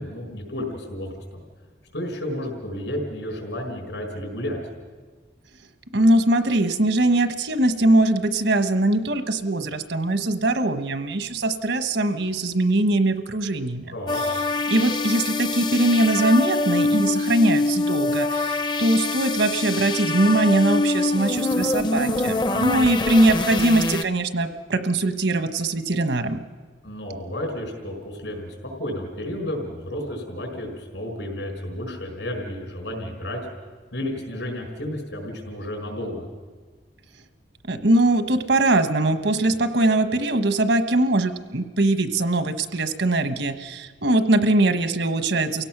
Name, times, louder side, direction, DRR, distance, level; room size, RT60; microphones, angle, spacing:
voice 1, 0.0-1.4 1.9-4.6 13.9-14.2 22.5-22.8 26.8-33.4 33.9-36.3, left 1 dB, 85° left, 2 dB, 5.4 m, -32 dB
voice 2, 5.9-13.9 14.7-26.4 37.7-45.6, right 2 dB, 75° right, 9 dB, 1.2 m, -21 dB
sound 1, 14.1-24.0, left 2 dB, 25° left, 0.6 m, -24 dB
29.0 x 17.0 x 6.0 m, 1.5 s
head